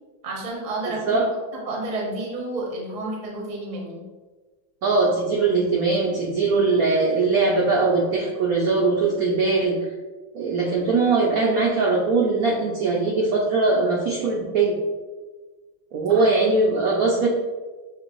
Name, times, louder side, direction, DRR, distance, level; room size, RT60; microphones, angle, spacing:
voice 1, 0.2-1.2 1.7-4.0 16.1-16.3, right 2 dB, 45° right, -2 dB, 0.5 m, -30 dB
voice 2, 4.8-9.9 10.3-14.8 15.9-17.3, right 3 dB, 80° right, -3 dB, 0.7 m, -21 dB
6.5 x 2.6 x 3.0 m, 1.3 s
omnidirectional pair, 2.3 m